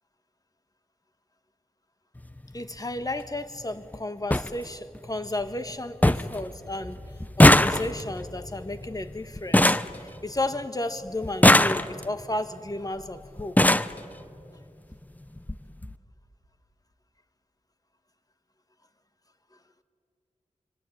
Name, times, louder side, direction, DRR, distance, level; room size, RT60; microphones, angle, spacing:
sound 1, 2.2-2.4 3.6-3.7 3.9-4.0 4.3-4.5 5.0-5.4 5.7-5.8 6.0-6.4 6.7-10.7 11.2-12.2 13.0-13.1 13.4-14.0 14.9-15.0 15.4-15.6 15.8-15.9, left 1 dB, 15° left, 0.9 m, -21 dB
voice 1, 2.5-7.0 7.4-13.6 19.5-19.6, left 2 dB, 30° left, 10 dB, 1.6 m, -33 dB
25.5 x 25.0 x 9.3 m, 2.6 s
cardioid pair, 55°, 12 cm